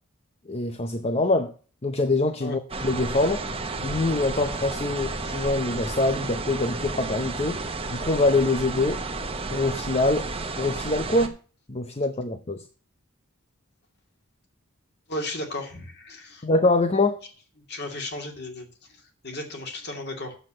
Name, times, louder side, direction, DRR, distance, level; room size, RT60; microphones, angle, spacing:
voice 1, 0.5-1.5 1.8-3.4 3.8-9.0 9.5-10.3 10.6-11.3 11.7-12.6 16.4-17.2, left 2 dB, 30° left, 8 dB, 0.7 m, -24 dB
sound 1, 2.7-11.3, right 3 dB, 25° right, 1.1 m, -32 dB
voice 2, 15.1-16.4 17.7-20.3, left 1 dB, 50° left, 3 dB, 2.6 m, -35 dB
8.1 x 7.4 x 7.6 m, 0.39 s
head